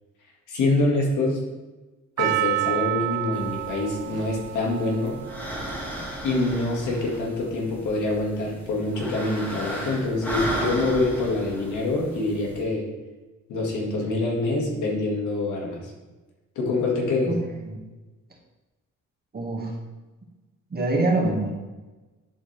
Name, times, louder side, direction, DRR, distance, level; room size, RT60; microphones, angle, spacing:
voice 1, 0.5-1.4 2.2-5.2 6.2-12.9 13.5-15.9 16.6-17.4, left 2 dB, 75° left, -1 dB, 1.9 m, -25 dB
Percussion, 2.2-6.5 7.2-7.3, right 16 dB, 85° right, 0.5 m, -29 dB
sound 1, 3.3-12.6, equal, 5° left, 1.7 m, -35 dB
voice 2, 17.2-17.8 19.3-19.7 20.7-21.5, right 2 dB, 30° right, 0 dB, 1.7 m, -25 dB
10.5 x 4.2 x 3.3 m, 1.2 s
cardioid pair, 90°, 30 cm